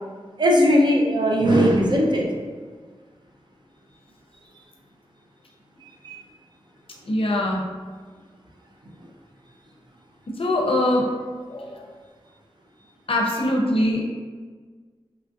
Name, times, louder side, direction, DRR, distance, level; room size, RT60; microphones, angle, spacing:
voice 1, 0.4-2.3 6.0-6.2, equal, 45° right, -1 dB, 0.5 m, -18 dB
voice 2, 7.1-7.6 10.3-11.1 11.5-11.9 13.1-14.1, left 1 dB, 60° left, -1 dB, 0.5 m, -22 dB
3.0 x 2.4 x 2.5 m, 1.5 s
wide cardioid pair, 90°, 11 cm